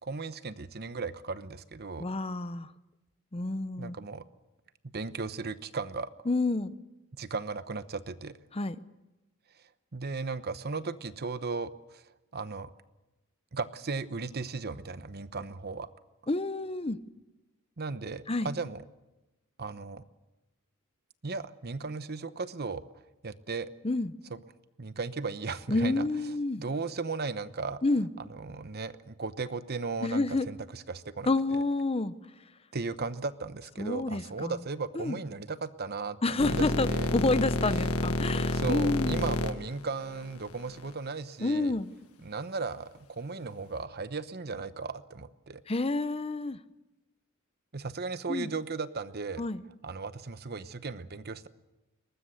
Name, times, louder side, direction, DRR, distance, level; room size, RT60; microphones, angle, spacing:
voice 1, 0.0-2.1 3.8-4.2 4.8-6.1 7.1-8.4 9.9-12.0 12.3-12.7 13.5-15.9 17.8-18.8 19.6-20.0 21.2-22.8 23.2-23.7 24.3-24.4 24.8-26.1 26.6-27.8 28.2-31.3 32.7-37.1 38.5-41.7 42.2-45.6 47.7-49.5 49.8-51.5, right 4 dB, 45° right, 13 dB, 0.9 m, -36 dB
voice 2, 2.0-2.7 3.3-4.0 6.3-6.7 8.5-8.8 16.3-17.0 18.3-18.5 23.8-24.1 25.7-26.6 27.8-28.1 30.0-30.5 31.3-32.1 33.8-34.5 34.9-35.2 36.2-39.2 41.4-41.9 45.7-46.6 48.3-48.5 49.4-49.6, left 2 dB, 25° left, 14 dB, 0.7 m, -29 dB
sound 1, 36.4-40.9, left 1 dB, 90° left, 1.6 m, -29 dB
22.5 x 20.0 x 8.2 m, 1.0 s
head